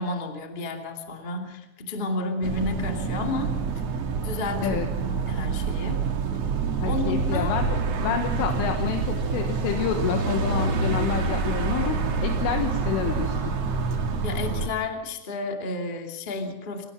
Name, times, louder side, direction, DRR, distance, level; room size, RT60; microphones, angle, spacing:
voice 1, 0.0-3.5 4.2-4.8 5.1-6.0 6.8-7.5 14.2-16.9, left 3 dB, 25° left, 3 dB, 1.0 m, -31 dB
sound 1, 2.4-14.7, right 4 dB, 65° right, 1.6 m, -27 dB
voice 2, 6.8-13.4, left 8 dB, 80° left, 4 dB, 3.9 m, -28 dB
26.5 x 18.0 x 6.1 m, 0.94 s
omnidirectional pair, 5.8 m